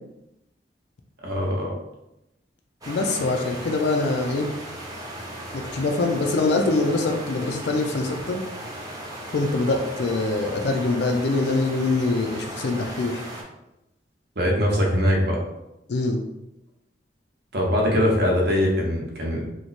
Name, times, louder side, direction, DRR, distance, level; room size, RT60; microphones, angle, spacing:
voice 1, 1.2-1.7 14.4-15.4 17.5-19.5, equal, 65° right, -1 dB, 0.8 m, -22 dB
sound 1, 2.8-13.4, right 1 dB, 20° right, 0.7 m, -37 dB
voice 2, 2.9-4.5 5.5-8.4 9.3-13.2 15.9-16.2, left 3 dB, 70° left, 3 dB, 0.4 m, -24 dB
3.1 x 2.1 x 4.0 m, 0.89 s
head